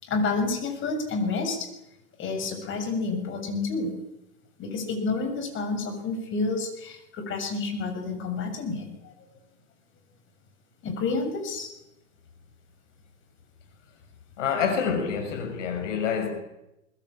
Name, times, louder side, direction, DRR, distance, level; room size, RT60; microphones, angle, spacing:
voice 1, 0.0-1.7 2.2-3.9 4.6-9.3 10.8-11.7, left 3 dB, 30° left, 7.1 m, -29 dB
voice 2, 14.4-16.3, left 6 dB, 60° left, 6.4 m, -27 dB
22.0 x 20.5 x 8.8 m
hypercardioid pair, 115°, 41 cm